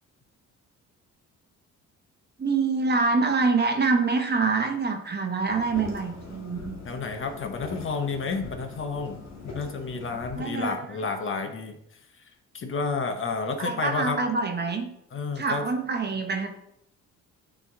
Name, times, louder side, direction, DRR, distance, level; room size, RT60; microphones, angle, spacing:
voice 1, 2.4-6.8 10.3-10.8 13.6-14.9 15.4-16.5, right 4 dB, 35° right, 4 dB, 1.0 m, -25 dB
sound 1, 5.5-10.5, left 4 dB, 60° left, 1.5 m, -41 dB
voice 2, 6.8-9.2 9.5-11.8 12.5-14.2 15.1-15.7, left 4 dB, 45° left, 5 dB, 0.8 m, -30 dB
8.6 x 3.1 x 3.6 m, 0.77 s
cardioid pair, 90°, 30 cm